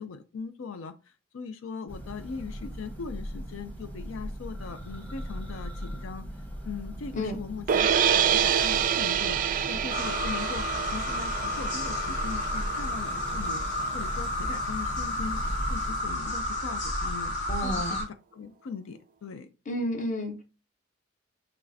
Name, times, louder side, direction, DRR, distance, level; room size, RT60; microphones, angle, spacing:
voice 1, 0.0-6.3 6.6-9.4 9.7-17.3 17.6-18.0 18.3-19.5, left 5 dB, 80° left, 0.5 m, -40 dB
Church bell, 1.9-16.2, equal, 10° left, 1.0 m, -39 dB
sound 1, 7.7-13.8, right 8 dB, 40° right, 0.3 m, -27 dB
sound 2, 9.9-18.0, left 1 dB, 60° left, 1.8 m, -31 dB
voice 2, 17.5-18.0 19.7-20.4, equal, 40° left, 0.9 m, -31 dB
6.0 x 3.2 x 2.7 m
head